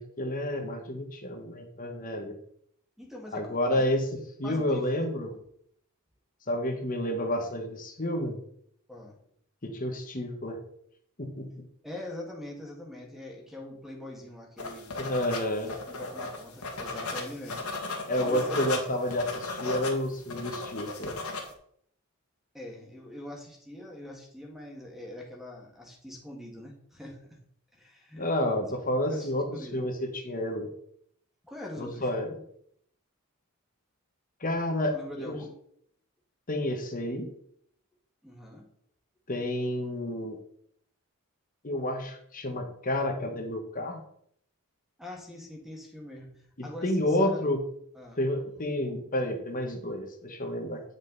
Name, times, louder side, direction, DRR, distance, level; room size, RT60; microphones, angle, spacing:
voice 1, 0.0-2.4 3.3-4.0 4.4-5.3 6.5-8.4 9.6-10.6 11.2-11.6 15.0-15.7 18.1-21.1 28.2-30.7 31.8-32.3 34.4-35.4 36.5-37.3 39.3-40.4 41.6-44.0 46.6-47.6 48.2-50.8, left 1 dB, 40° left, 3 dB, 1.3 m, -30 dB
voice 2, 3.0-3.9 4.4-4.8 5.2-5.4 8.9-9.2 11.8-14.9 15.9-17.7 18.1-18.7 22.5-27.4 27.7-28.3 29.1-29.8 31.4-32.1 34.9-35.5 38.2-38.6 45.0-47.4 47.9-48.2, left 1 dB, ahead, 0 dB, 1.9 m, -43 dB
sound 1, 14.6-21.5, left 3 dB, 80° left, 1.9 m, -36 dB
9.5 x 5.5 x 4.0 m, 0.66 s
head